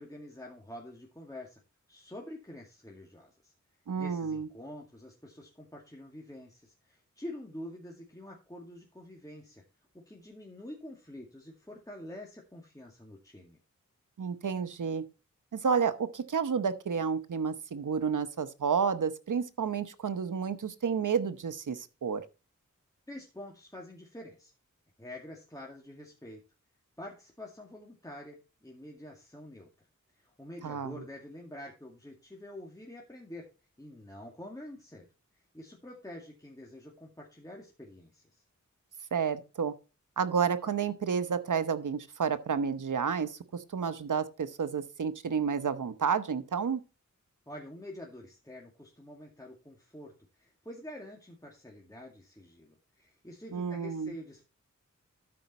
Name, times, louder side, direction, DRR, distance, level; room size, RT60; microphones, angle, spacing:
voice 1, 0.0-1.6 1.9-3.5 3.9-9.6 10.1-13.6 23.1-24.5 25.0-26.4 27.0-29.7 30.2-33.4 33.8-35.1 35.5-38.4 47.5-54.5, left 1 dB, 10° left, 2.1 m, -47 dB
voice 2, 3.9-4.5 14.2-15.0 15.5-22.2 30.6-30.9 39.1-39.7 40.2-46.8 53.5-54.1, right 6 dB, 85° right, 0.9 m, -30 dB
12.5 x 5.2 x 4.2 m
wide cardioid pair, 60°, 30 cm